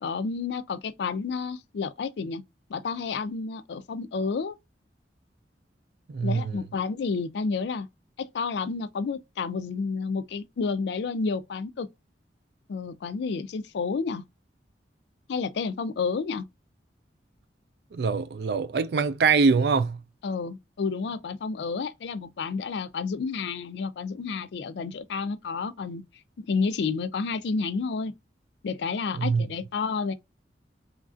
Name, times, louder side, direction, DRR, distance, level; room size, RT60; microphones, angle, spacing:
voice 1, 0.0-2.4 2.7-4.6 6.2-7.9 8.2-11.9 12.7-14.2 15.3-16.5 20.2-26.0 26.4-28.1 28.6-30.1, left 4 dB, 70° left, 0.4 m, -30 dB
voice 2, 6.1-6.6 17.9-20.0 29.1-29.5, right 5 dB, 60° right, 0.4 m, -24 dB
3.1 x 2.4 x 2.4 m
head